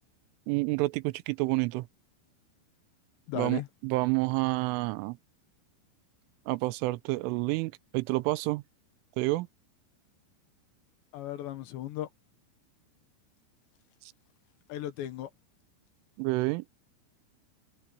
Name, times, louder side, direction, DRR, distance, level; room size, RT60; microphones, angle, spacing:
voice 1, 0.5-1.9 3.4-5.2 6.5-8.6 9.2-9.5 16.2-16.6, right 21 dB, 90° right, 3.2 m, -29 dB
voice 2, 3.3-3.7 11.1-12.1 14.7-15.3, left 12 dB, 70° left, 3.5 m, -36 dB
omnidirectional pair, 5.6 m